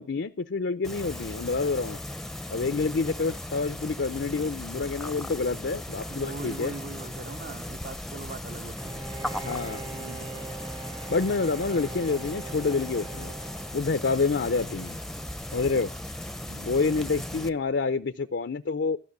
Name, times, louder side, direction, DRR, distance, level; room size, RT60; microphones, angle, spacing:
voice 1, 0.0-2.0 2.5-6.7 9.4-9.8 11.1-13.3 13.7-15.0 15.5-15.9 16.6-19.0, left 4 dB, 90° left, 0.6 m, -28 dB
sound 1, 0.8-17.5, left 1 dB, ahead, 0.5 m, -37 dB
voice 2, 6.1-9.1 9.7-10.6 14.6-14.9 16.3-17.2, right 3 dB, 55° right, 0.8 m, -43 dB
Bowed string instrument, 8.8-14.3, right 4 dB, 25° right, 0.8 m, -42 dB
sound 2, 11.5-17.9, equal, 75° right, 5.8 m, -51 dB
14.0 x 6.0 x 9.5 m
head